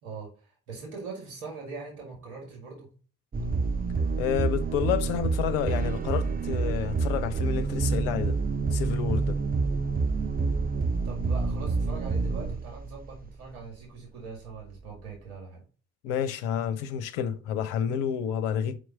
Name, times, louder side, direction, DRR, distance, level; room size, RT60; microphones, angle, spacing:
voice 1, 0.0-2.9 11.0-15.6, right 4 dB, 75° right, 2.2 m, -42 dB
sound 1, 3.3-13.5, right 4 dB, 20° right, 0.8 m, -28 dB
voice 2, 4.2-8.4 8.7-9.4 16.0-18.8, left 9 dB, 70° left, 0.9 m, -29 dB
6.6 x 4.7 x 5.4 m
hypercardioid pair, 50°, 42 cm